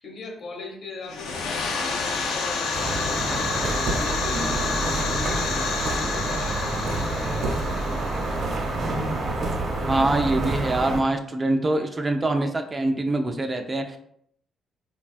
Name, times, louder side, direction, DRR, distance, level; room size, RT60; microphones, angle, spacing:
voice 1, 0.0-5.6 5.9-7.9, left 2 dB, 60° left, 1 dB, 0.8 m, -39 dB
sound 1, 1.0-9.6, left 4 dB, 85° left, 0.4 m, -29 dB
sound 2, 2.7-11.0, right 2 dB, 55° right, 0.8 m, -28 dB
voice 2, 9.9-14.0, right 2 dB, 25° right, 5 dB, 0.3 m, -24 dB
3.2 x 2.2 x 2.4 m, 0.69 s
cardioid pair, 90°, 0 cm